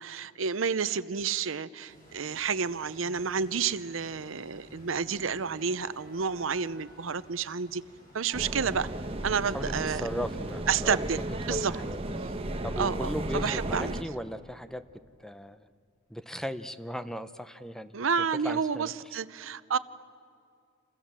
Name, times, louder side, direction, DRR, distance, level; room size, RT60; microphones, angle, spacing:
voice 1, 0.0-7.8 8.1-8.9 9.2-10.0 10.7-11.7 12.8-13.9 17.9-19.8, right 6 dB, 80° right, 15 dB, 0.7 m, -30 dB
sound 1, 1.9-13.2, equal, 45° left, 7.9 m, -56 dB
sound 2, 5.0-7.7 8.3-10.8, right 1 dB, 50° right, 3.1 m, -54 dB
sound 3, 8.3-14.0, right 1 dB, 30° right, 1.2 m, -34 dB
voice 2, 9.5-11.0 11.7-12.0 12.6-14.8 15.2-15.7 16.1-17.9 18.4-18.9, equal, 5° left, 11 dB, 0.7 m, -37 dB
28.5 x 27.5 x 7.5 m, 2.3 s
head